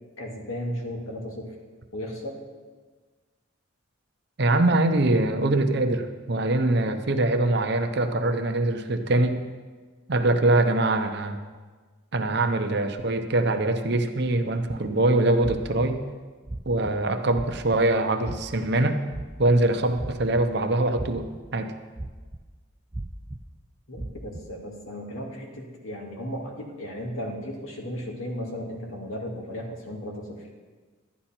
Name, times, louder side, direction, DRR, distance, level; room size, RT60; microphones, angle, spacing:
voice 1, 0.2-1.5 1.9-2.4 23.9-30.5, equal, 80° left, 0 dB, 2.1 m, -35 dB
voice 2, 4.4-9.5 10.1-11.4 12.1-16.0 16.7-19.0 19.4-21.7, right 2 dB, 50° right, 7 dB, 0.8 m, -23 dB
sound 1, 14.7-14.9 15.4-15.9 16.4-16.9 17.3-17.8 18.2-18.7 19.1-19.5 20.0-20.6 21.0-21.4 22.0-22.4 22.9-23.4 23.9-24.4, right 2 dB, 15° right, 0.4 m, -35 dB
11.5 x 11.0 x 4.4 m, 1.4 s
head